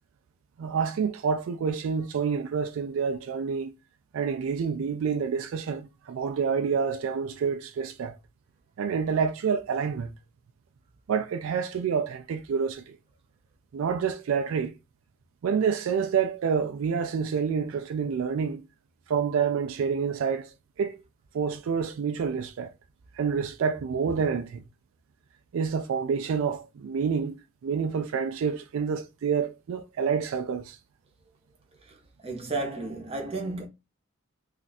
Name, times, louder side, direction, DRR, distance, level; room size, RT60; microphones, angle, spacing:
voice 1, 0.6-3.7 4.1-8.2 8.8-10.1 11.1-13.0 13.7-14.7 15.4-18.6 19.1-21.0 21.3-22.7 23.2-24.6 25.5-27.4 27.6-30.8, right 6 dB, 75° right, 0.3 m, -28 dB
voice 2, 32.2-33.7, right 2 dB, 30° right, 0.8 m, -32 dB
2.6 x 2.3 x 3.9 m
head